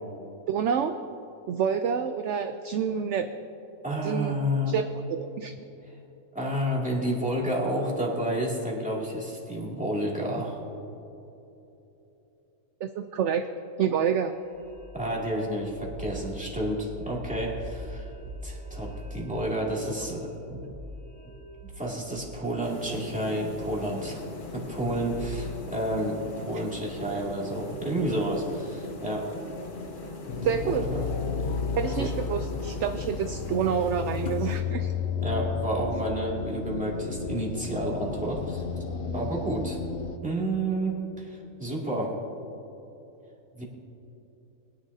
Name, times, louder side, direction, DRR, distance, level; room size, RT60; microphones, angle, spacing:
voice 1, 0.5-1.0 1.5-3.3 4.0-4.3 4.7-5.5 12.8-13.5 13.8-14.3 30.4-30.8 31.8-34.9, right 7 dB, 65° right, 8 dB, 0.7 m, -28 dB
voice 2, 3.8-4.7 6.3-10.6 14.9-18.1 18.4-20.7 21.6-24.2 24.5-29.3 30.4-31.0 32.0-32.1 35.2-38.6 39.1-39.8 40.2-42.2 43.5-43.6, right 1 dB, 5° right, -5 dB, 2.3 m, -30 dB
sound 1, 14.0-26.0, equal, 45° right, 1.1 m, -43 dB
sound 2, 22.6-34.6, left 2 dB, 40° left, 1.0 m, -40 dB
sound 3, 30.3-40.2, left 6 dB, 65° left, 1.1 m, -32 dB
21.5 x 10.5 x 2.7 m, 3.0 s
omnidirectional pair, 1.6 m